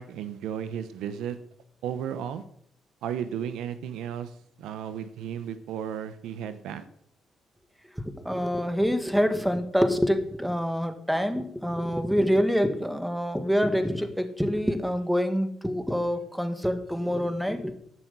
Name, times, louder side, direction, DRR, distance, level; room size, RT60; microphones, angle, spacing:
voice 1, 0.0-1.4 1.8-2.4 3.0-6.8, right 9 dB, 85° right, 12 dB, 0.9 m, -34 dB
voice 2, 8.0-17.7, equal, ahead, 8 dB, 1.6 m, -26 dB
11.5 x 6.0 x 8.2 m, 0.67 s
cardioid pair, 90°, 0 cm